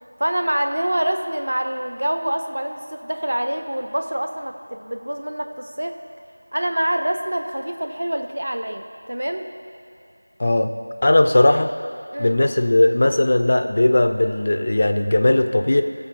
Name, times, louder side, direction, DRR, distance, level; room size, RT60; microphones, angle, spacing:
voice 1, 0.2-6.0 6.5-9.5 12.1-12.4, right 1 dB, 50° right, 6 dB, 0.7 m, -26 dB
voice 2, 10.4-10.7 11.0-11.7 12.2-15.8, left 1 dB, 25° left, 8 dB, 0.3 m, -17 dB
17.0 x 6.8 x 2.7 m, 2.6 s
figure-of-eight pair, 175°, 0 cm